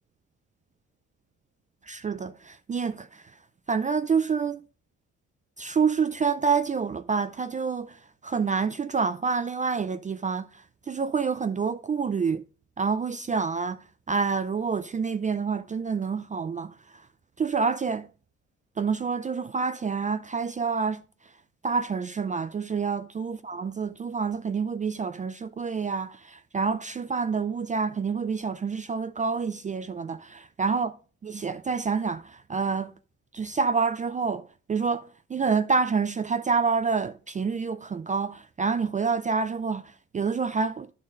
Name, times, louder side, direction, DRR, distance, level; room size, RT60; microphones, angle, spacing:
voice 1, 1.8-3.2 3.7-4.6 5.6-12.4 12.8-16.8 17.4-18.1 18.8-21.0 21.6-30.9 31.2-32.9 33.3-40.9, right 5 dB, 25° right, 0.4 m, -28 dB
11.0 x 4.0 x 3.7 m
cardioid pair, 90°, 30 cm